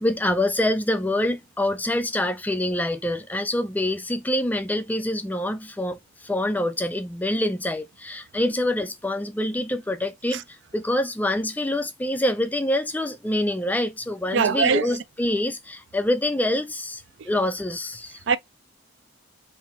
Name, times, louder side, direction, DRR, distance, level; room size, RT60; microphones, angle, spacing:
voice 1, 0.0-18.2, left 1 dB, 10° left, 0.3 m, -26 dB
voice 2, 14.3-14.9 18.3-18.4, right 6 dB, 65° right, 0.4 m, -21 dB
3.7 x 2.6 x 3.1 m
head